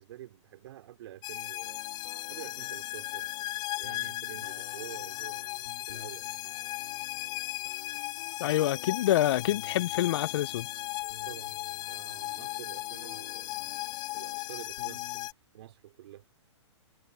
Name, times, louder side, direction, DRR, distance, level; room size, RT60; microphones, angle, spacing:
voice 1, 0.0-1.8 2.3-3.3 3.8-6.4 11.2-13.7 14.1-15.2 15.5-16.2, right 13 dB, 55° right, 3.2 m, -48 dB
sound 1, 1.2-15.3, left 18 dB, 25° left, 0.8 m, -37 dB
sound 2, 1.6-15.3, left 9 dB, 70° left, 2.6 m, -52 dB
voice 2, 8.4-10.7, left 13 dB, 55° left, 0.5 m, -27 dB
hypercardioid pair, 140°, 16 cm